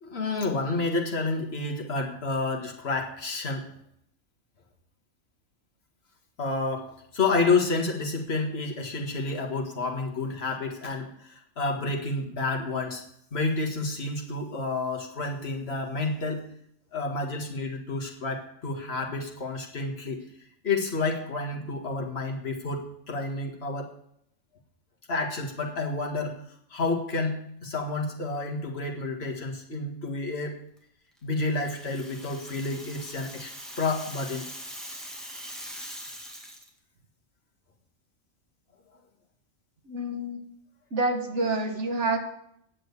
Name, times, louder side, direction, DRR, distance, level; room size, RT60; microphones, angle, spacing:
voice 1, 0.0-3.7 6.4-13.0 13.3-16.4 16.9-20.2 20.6-23.9 25.1-26.4 26.7-30.6 31.2-33.5 33.8-34.5, left 3 dB, 50° left, 1 dB, 1.9 m, -30 dB
Rattle (instrument), 31.5-36.7, equal, ahead, 1.8 m, -42 dB
voice 2, 39.9-40.4 40.9-42.2, right 2 dB, 60° right, 4 dB, 1.9 m, -28 dB
9.5 x 7.7 x 8.2 m, 0.72 s
omnidirectional pair, 1.4 m